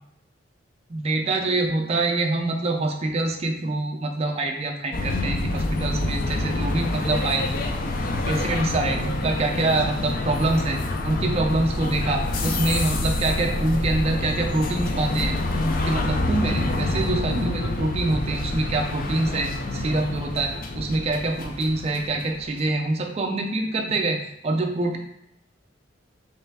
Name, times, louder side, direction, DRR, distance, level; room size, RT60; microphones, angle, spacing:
voice 1, 0.9-7.4 8.3-10.8 11.0-15.3 15.6-24.2 24.4-25.0, right 2 dB, 30° right, 3 dB, 0.4 m, -25 dB
sound 1, 4.9-22.6, left 2 dB, 45° left, 0.4 m, -27 dB
sound 2, 13.1-20.2, right 2 dB, 65° left, 0.8 m, -43 dB
3.2 x 3.2 x 3.4 m, 0.78 s
head